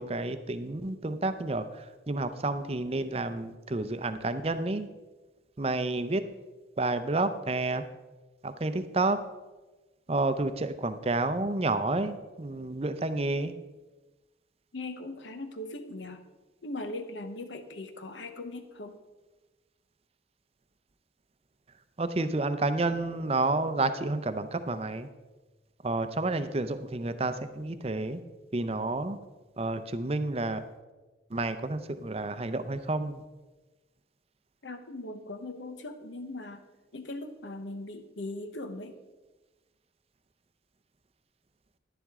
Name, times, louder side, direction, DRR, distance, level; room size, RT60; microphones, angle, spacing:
voice 1, 0.0-4.9 5.6-6.2 6.8-7.8 8.4-9.2 10.1-13.5 22.0-25.1 25.8-28.2 28.5-29.2 29.6-30.6 31.3-33.2, right 2 dB, 35° right, 11 dB, 0.6 m, -30 dB
voice 2, 14.7-16.2 16.6-19.0 34.6-36.6 36.9-39.0, left 2 dB, 80° left, 8 dB, 1.0 m, -39 dB
11.0 x 10.5 x 3.6 m, 1.2 s
head